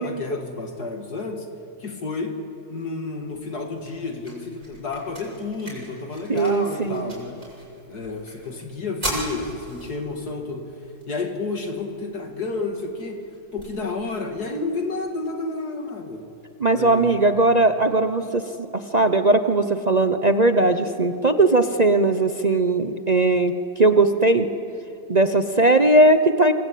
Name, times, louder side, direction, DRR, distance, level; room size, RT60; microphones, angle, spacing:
voice 1, 0.0-1.5 1.8-2.4 2.7-7.4 7.9-10.7 11.1-13.3 13.5-16.3 16.7-17.2, left 3 dB, 50° left, 4 dB, 2.6 m, -30 dB
sound 1, 3.2-15.2, right 1 dB, 35° right, 8.3 m, -40 dB
voice 2, 6.3-7.1 16.6-18.4 18.9-24.5 25.1-26.5, right 2 dB, 55° right, 8 dB, 0.4 m, -18 dB
26.5 x 26.0 x 8.6 m, 2.6 s
omnidirectional pair, 2.2 m